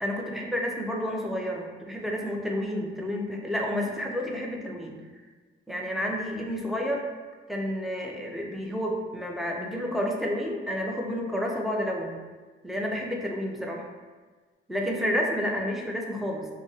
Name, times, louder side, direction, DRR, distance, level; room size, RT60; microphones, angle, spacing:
voice 1, 0.0-5.0 5.7-7.0 7.5-12.2 12.6-13.9 14.7-16.5, equal, ahead, -1 dB, 0.5 m, -30 dB
2.5 x 2.0 x 3.8 m, 1.4 s
cardioid pair, 90°, 20 cm